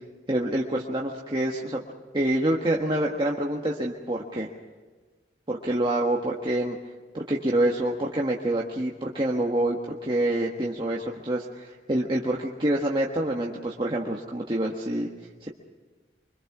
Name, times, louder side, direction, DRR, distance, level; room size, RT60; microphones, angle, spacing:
voice 1, 0.3-1.8 2.1-4.5 5.5-6.8 7.1-15.1 15.4-15.5, right 1 dB, 25° right, -2 dB, 1.5 m, -27 dB
25.5 x 24.5 x 6.1 m, 1.3 s
head